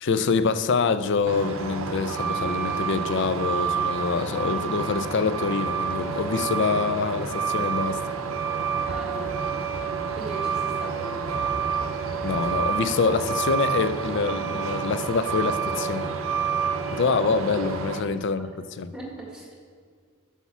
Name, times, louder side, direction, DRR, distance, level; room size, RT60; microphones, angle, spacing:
voice 1, 0.0-8.0 12.2-16.1 16.9-18.5 18.8-18.9, left 5 dB, 55° left, 13 dB, 0.4 m, -25 dB
Truck, 1.3-18.0, right 6 dB, 70° right, 0.6 m, -28 dB
voice 2, 8.8-9.3 10.1-11.5 18.0-18.1 18.9-19.5, right 2 dB, 5° right, -3 dB, 1.7 m, -39 dB
8.2 x 5.7 x 6.0 m, 2.1 s
head